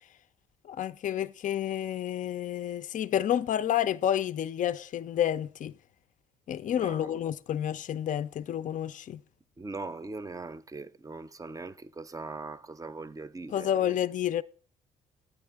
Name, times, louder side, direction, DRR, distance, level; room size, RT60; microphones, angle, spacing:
voice 1, 0.7-5.7 6.5-9.2 13.5-14.4, left 10 dB, 50° left, 0.5 m, -29 dB
voice 2, 6.8-7.1 9.6-14.0, right 3 dB, 20° right, 0.5 m, -40 dB
9.4 x 8.8 x 3.5 m
hypercardioid pair, 55°, 17 cm